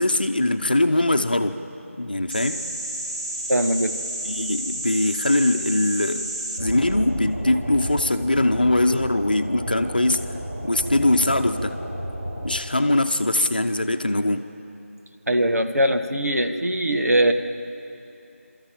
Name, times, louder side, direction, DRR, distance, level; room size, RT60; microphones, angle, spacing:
voice 1, 0.0-1.5 1.9-2.6 4.2-6.3 6.6-10.2 10.6-11.8 12.4-14.4, left 1 dB, 35° left, 7 dB, 0.8 m, -21 dB
sound 1, 2.3-12.6, right 1 dB, 25° right, 1.7 m, -31 dB
voice 2, 3.5-3.9 15.3-17.3, right 1 dB, 90° right, 6 dB, 1.7 m, -21 dB
23.5 x 13.5 x 9.0 m, 2.7 s
figure-of-eight pair, 180°, 8 cm